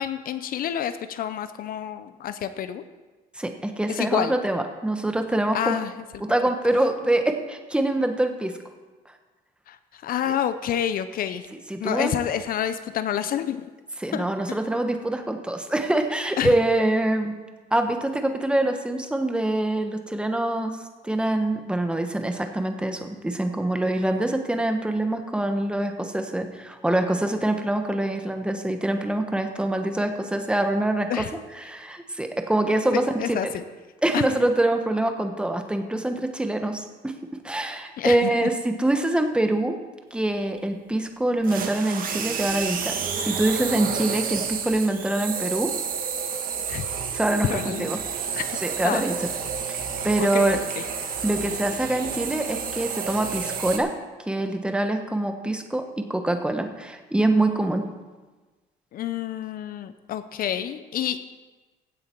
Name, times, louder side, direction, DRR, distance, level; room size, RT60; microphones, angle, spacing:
voice 1, 0.0-2.8 3.9-4.3 5.5-6.0 9.7-11.5 11.8-13.7 14.1-14.6 16.4-16.5 31.1-31.3 32.9-33.6 34.1-34.2 38.0-38.5 46.7-46.9 47.4-47.9 48.4-48.6 48.8-49.1 50.2-50.8 58.9-61.2, left 10 dB, 60° left, 12 dB, 0.7 m, -28 dB
voice 2, 3.4-5.8 6.2-8.5 11.7-12.1 14.0-17.3 17.7-20.8 21.0-31.2 31.6-33.5 34.0-37.1 37.4-39.8 40.1-45.7 47.1-48.0 48.6-49.3 49.7-49.8 50.0-50.6 51.2-53.9 54.3-57.9, right 1 dB, 5° right, 6 dB, 1.2 m, -25 dB
sound 1, 41.4-53.8, right 6 dB, 55° right, 1.6 m, -30 dB
16.5 x 7.8 x 4.6 m, 1.3 s
cardioid pair, 110°, 17 cm